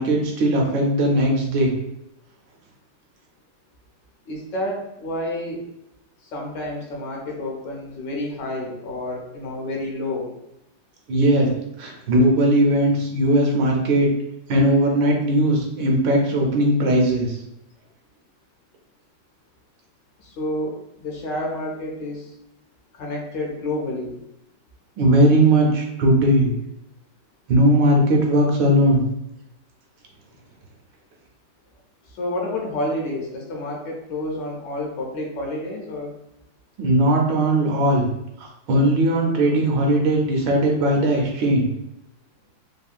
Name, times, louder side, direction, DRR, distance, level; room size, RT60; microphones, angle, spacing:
voice 1, 0.0-1.7 11.1-11.5 11.8-14.1 14.5-17.4 25.0-26.5 27.5-29.0 36.8-38.1 38.4-41.7, right 1 dB, 75° right, 0 dB, 1.2 m, -18 dB
voice 2, 4.3-5.6 6.3-10.3 20.2-22.3 22.9-24.1 32.1-36.2, left 1 dB, 70° left, -2 dB, 1.2 m, -29 dB
3.4 x 2.1 x 2.4 m, 0.83 s
omnidirectional pair, 2.1 m